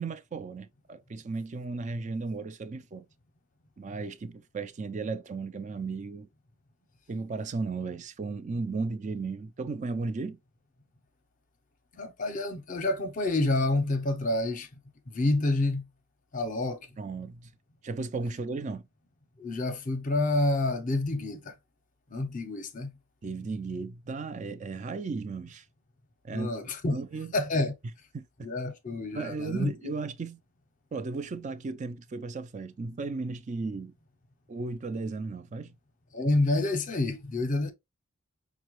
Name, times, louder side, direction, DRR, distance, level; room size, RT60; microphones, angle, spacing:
voice 1, 0.0-3.1 3.8-6.3 7.1-10.4 17.0-17.5 17.8-18.8 23.2-25.6 26.2-26.5 26.9-27.3 28.1-28.2 29.1-30.4 30.9-33.9 34.5-35.7, right 4 dB, 35° right, 0.3 m, -35 dB
voice 2, 11.9-14.7 15.1-15.8 16.3-16.8 19.4-21.5 22.1-22.9 26.3-27.0 27.3-27.7 28.4-29.9 36.1-37.7, left 2 dB, 35° left, 0.6 m, -28 dB
5.3 x 2.1 x 3.0 m
head